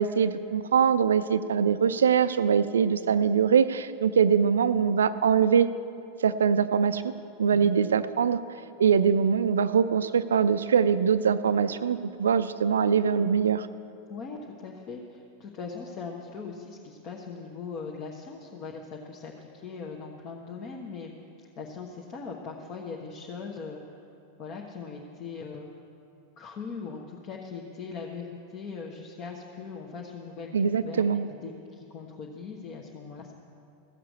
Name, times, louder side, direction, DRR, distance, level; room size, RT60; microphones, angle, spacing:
voice 1, 0.0-5.7 6.2-7.0 7.4-8.4 8.8-13.7 30.5-31.3, right 7 dB, 65° right, 13 dB, 0.4 m, -23 dB
voice 2, 14.1-21.1 21.6-24.0 24.4-25.7 26.4-33.3, left 5 dB, 35° left, -1 dB, 1.1 m, -40 dB
15.0 x 7.5 x 8.2 m, 2.6 s
figure-of-eight pair, 90°, 0 cm